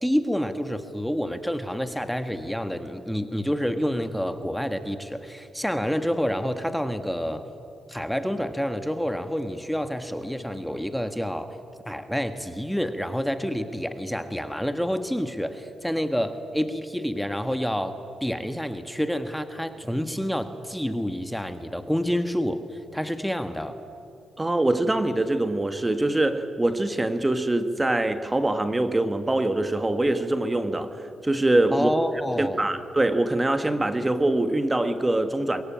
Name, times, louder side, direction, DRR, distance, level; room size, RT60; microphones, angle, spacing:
voice 1, 0.0-7.5 7.9-11.6 11.9-23.8 31.7-32.7, equal, ahead, 1.5 m, -28 dB
voice 2, 24.4-31.9 32.4-35.6, right 2 dB, 20° right, 1.6 m, -24 dB
23.5 x 22.0 x 8.9 m
supercardioid pair, 60°, 0 cm